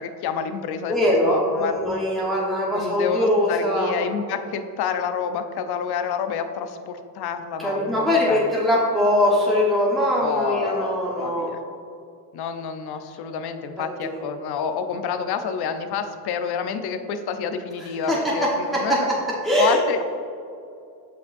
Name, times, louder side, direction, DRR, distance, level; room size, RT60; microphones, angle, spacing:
voice 1, 0.0-1.8 2.7-8.4 10.2-11.6 12.3-19.1 19.6-20.0, left 6 dB, 60° left, 8 dB, 0.7 m, -28 dB
voice 2, 0.9-3.9 7.6-11.5 14.0-14.2 18.0-19.1 19.4-19.8, equal, ahead, -6 dB, 1.2 m, -22 dB
7.9 x 5.2 x 2.6 m, 2.5 s
supercardioid pair, 70°, 44 cm